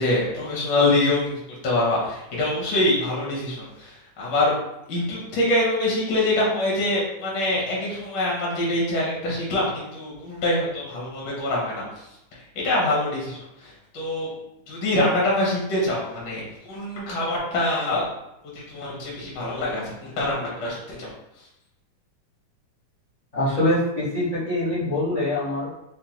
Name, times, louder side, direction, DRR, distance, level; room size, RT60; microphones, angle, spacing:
voice 1, 0.0-4.5 4.9-11.8 12.3-14.3 14.7-18.0 18.5-21.1, left 1 dB, 80° left, -5 dB, 0.9 m, -25 dB
voice 2, 23.3-25.8, left 1 dB, 60° left, -12 dB, 0.4 m, -24 dB
5.2 x 2.1 x 2.9 m, 0.86 s
omnidirectional pair, 3.5 m